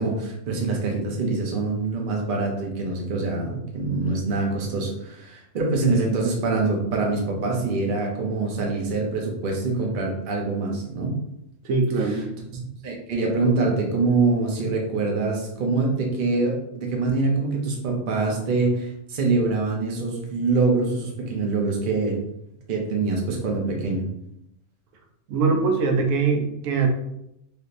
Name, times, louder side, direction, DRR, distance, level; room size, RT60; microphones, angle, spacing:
voice 1, 0.0-11.2 12.5-22.2 22.7-24.0, right 3 dB, 50° right, 0 dB, 0.8 m, -24 dB
voice 2, 11.6-12.3 25.3-26.9, right 4 dB, 85° right, 3 dB, 1.0 m, -22 dB
3.4 x 2.7 x 2.5 m, 0.81 s
omnidirectional pair, 1.3 m